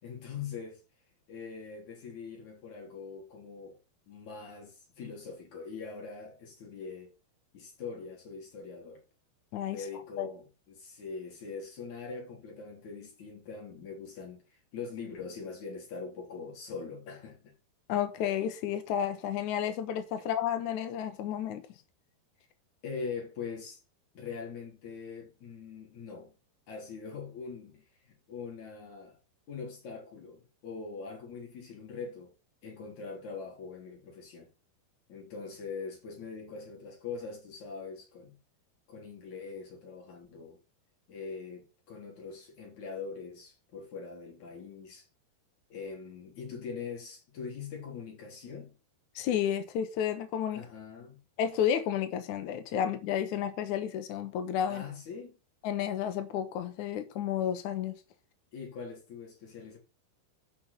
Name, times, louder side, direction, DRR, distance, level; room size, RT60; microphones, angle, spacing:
voice 1, 0.0-0.8 1.3-3.8 4.1-7.1 7.5-9.0 9.7-17.5 20.2-20.3 22.8-23.8 24.1-26.3 26.7-29.2 29.5-32.3 32.6-34.5 35.1-38.4 38.9-40.6 41.1-45.1 45.7-48.8 50.5-51.2 54.7-55.4 58.5-59.8, left 5 dB, 40° left, 4.5 m, -42 dB
voice 2, 17.9-21.6 49.1-50.6 51.4-54.8 55.6-58.0, left 9 dB, 85° left, 1.7 m, -31 dB
8.8 x 5.8 x 6.9 m
omnidirectional pair, 5.3 m